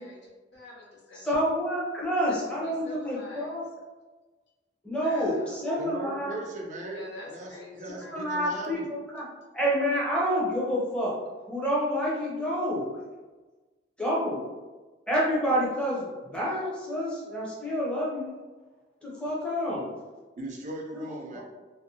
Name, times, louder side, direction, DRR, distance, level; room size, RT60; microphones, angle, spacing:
voice 1, 0.0-1.3 2.3-2.4 2.8-3.6 5.0-5.4 6.9-8.3, left 2 dB, 85° left, -3 dB, 0.7 m, -46 dB
voice 2, 1.1-3.6 4.8-6.4 7.9-9.2 9.5-11.1 11.5-12.9 14.0-14.4 15.1-18.3 19.0-19.9 20.9-21.0 21.3-21.4, equal, 5° left, -6 dB, 0.7 m, -28 dB
voice 3, 5.8-9.0 20.4-21.4, right 2 dB, 45° right, -1 dB, 0.5 m, -38 dB
2.6 x 2.2 x 2.6 m, 1.2 s
head